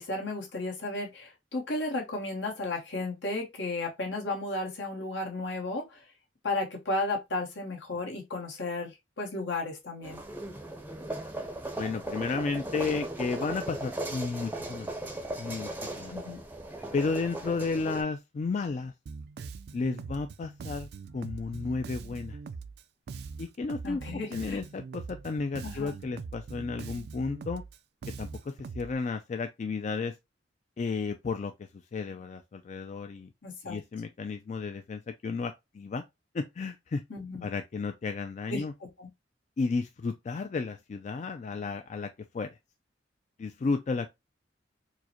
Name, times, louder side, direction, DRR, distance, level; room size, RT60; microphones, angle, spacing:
voice 1, 0.0-6.0 6.4-10.2 16.1-16.4 23.8-24.6 25.6-25.9 33.4-33.8 37.1-37.5 38.5-39.1, left 2 dB, 80° left, 1.2 m, -34 dB
sound 1, 10.0-18.0, right 1 dB, 10° right, 0.6 m, -37 dB
voice 2, 11.8-14.9 15.4-16.1 16.9-18.9 19.7-22.4 23.4-24.0 24.3-27.6 28.2-30.2 30.8-33.3 33.6-36.0 36.3-37.0 37.4-38.7 39.6-42.6 43.4-44.1, left 4 dB, 40° left, 0.3 m, -33 dB
Bass guitar, 19.1-28.9, right 5 dB, 60° right, 0.3 m, -42 dB
4.6 x 2.1 x 2.8 m
head